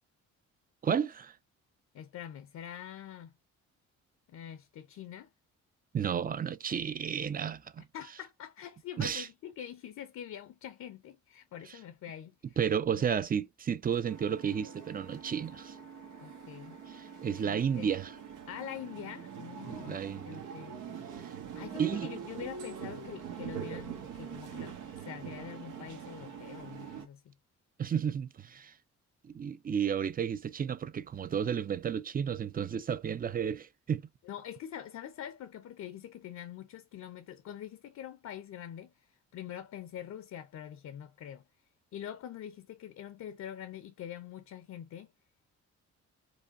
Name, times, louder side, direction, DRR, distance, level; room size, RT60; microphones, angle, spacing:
voice 1, 0.8-1.3 5.9-7.9 9.0-9.3 12.6-15.8 16.9-18.1 19.7-20.4 21.2-21.3 21.8-22.1 27.8-28.7 29.2-34.1, right 7 dB, 30° right, 0.5 m, -32 dB
voice 2, 1.9-3.3 4.3-5.3 7.9-12.6 12.9-13.1 16.2-16.8 17.3-17.9 18.5-20.7 21.5-27.3 34.2-41.4 41.9-45.1, left 10 dB, 65° left, 0.7 m, -45 dB
sound 1, 14.1-27.1, right 7 dB, 85° right, 1.2 m, -44 dB
4.8 x 2.3 x 2.5 m
cardioid pair, 90°, 30 cm